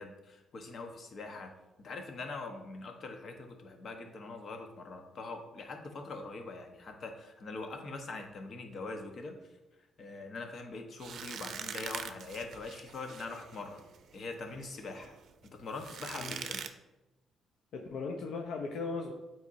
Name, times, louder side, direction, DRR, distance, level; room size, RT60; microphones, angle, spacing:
voice 1, 0.0-1.5 1.8-9.4 10.0-13.8 14.1-15.1 15.5-16.6, left 3 dB, 50° left, 4 dB, 1.0 m, -43 dB
sound 1, 11.0-16.7, right 7 dB, 65° right, 0.5 m, -44 dB
voice 2, 17.7-19.1, left 4 dB, 75° left, 2 dB, 0.6 m, -37 dB
8.3 x 4.4 x 2.6 m, 1.0 s
cardioid pair, 90°, 0 cm